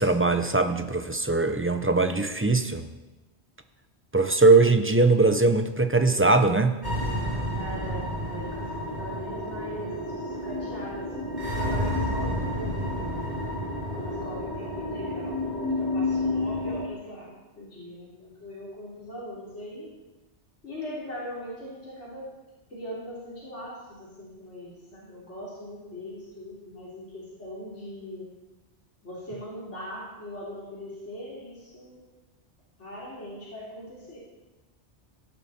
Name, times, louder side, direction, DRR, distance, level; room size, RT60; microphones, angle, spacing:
voice 1, 0.0-2.9 4.1-6.8, right 3 dB, 15° right, 8 dB, 0.6 m, -21 dB
sound 1, 6.8-16.9, left 1 dB, 40° right, 3.2 m, -30 dB
voice 2, 7.5-13.2 13.9-19.9 20.6-22.3 22.7-28.3 29.0-32.1 32.8-34.2, equal, 80° left, -7 dB, 4.0 m, -40 dB
16.5 x 11.5 x 4.4 m, 1.1 s
omnidirectional pair, 1.2 m